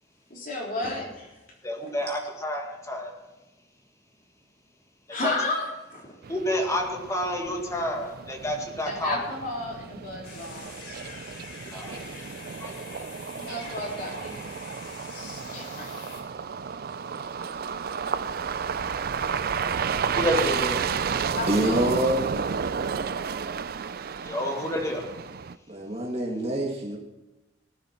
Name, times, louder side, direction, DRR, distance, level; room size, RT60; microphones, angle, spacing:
voice 1, 0.3-1.3 5.1-5.6 5.9-6.2 8.8-11.0 13.3-14.4 15.1-16.2 21.4-21.8, left 2 dB, 50° left, -2 dB, 3.6 m, -33 dB
voice 2, 1.6-3.1 5.2-5.3 6.3-9.2 11.7-12.0 12.6-12.7 20.2-20.8 24.3-25.0, left 1 dB, 15° left, 2 dB, 1.9 m, -29 dB
sound 1, 6.2-25.6, right 6 dB, 55° right, 0.4 m, -32 dB
sound 2, 10.2-16.2, left 3 dB, 75° left, 3.2 m, -45 dB
voice 3, 21.5-22.2 25.7-27.0, right 1 dB, 35° right, -2 dB, 1.9 m, -25 dB
18.5 x 9.6 x 4.4 m, 1.1 s
head